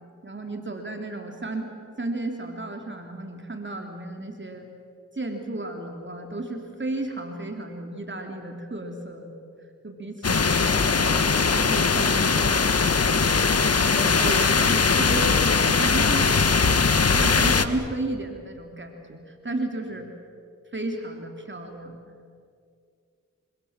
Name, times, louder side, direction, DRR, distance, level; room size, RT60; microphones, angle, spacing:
voice 1, 0.2-1.7 2.0-4.7 5.1-9.4 9.8-10.8 11.5-12.7 13.8-20.1 20.7-22.0, right 2 dB, 40° right, 3 dB, 3.2 m, -33 dB
sound 1, 10.2-17.7, left 5 dB, 55° left, 1.5 m, -20 dB
26.0 x 25.5 x 7.4 m, 2.3 s
cardioid pair, 45°, 30 cm